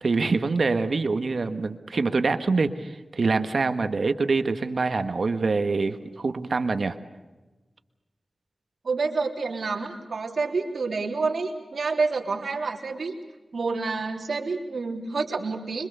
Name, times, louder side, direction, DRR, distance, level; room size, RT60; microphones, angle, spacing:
voice 1, 0.0-7.0, right 3 dB, 65° right, 9 dB, 1.5 m, -25 dB
voice 2, 8.8-13.2 13.5-15.9, right 4 dB, 80° right, 1 dB, 3.4 m, -28 dB
26.0 x 23.5 x 6.9 m, 1.2 s
wide cardioid pair, 80°, 0 cm